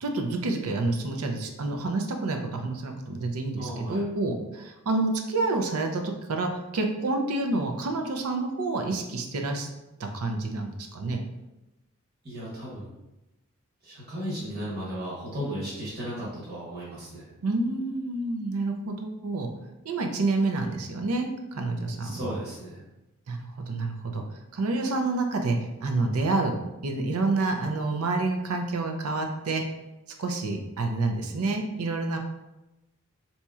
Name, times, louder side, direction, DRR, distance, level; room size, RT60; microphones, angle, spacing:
voice 1, 0.0-9.7 10.0-11.2 17.4-19.5 19.9-21.3 21.6-22.2 23.3-23.4 23.7-24.2 24.5-26.6 26.8-29.6 30.2-32.2, right 2 dB, 85° right, 4 dB, 0.5 m, -28 dB
voice 2, 3.6-4.0 12.2-12.8 13.8-17.2 22.0-22.8, equal, 45° right, -8 dB, 1.3 m, -35 dB
4.2 x 2.8 x 2.3 m, 0.97 s
head